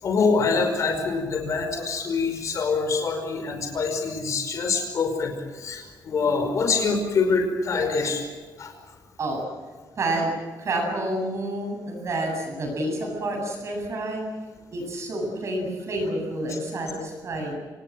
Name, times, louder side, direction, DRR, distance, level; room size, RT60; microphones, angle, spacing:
voice 1, 0.0-8.2 8.6-8.7 16.5-16.6, left 4 dB, 45° left, 5 dB, 5.2 m, -25 dB
voice 2, 10.0-10.3 10.6-14.2 14.7-17.5, right 1 dB, 40° right, 2 dB, 8.0 m, -29 dB
28.0 x 19.0 x 7.7 m, 1.3 s
cardioid pair, 170°, 7 cm